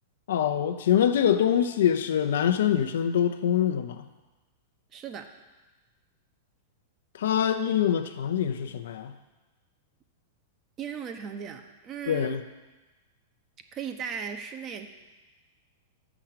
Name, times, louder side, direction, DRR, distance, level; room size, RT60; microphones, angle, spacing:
voice 1, 0.3-4.1 7.1-9.1 12.1-12.4, left 9 dB, 70° left, 8 dB, 0.6 m, -24 dB
voice 2, 4.9-5.3 10.8-12.4 13.7-14.9, right 7 dB, 35° right, 6 dB, 0.9 m, -37 dB
6.5 x 6.0 x 7.5 m, 1.2 s
hypercardioid pair, 105°, 0 cm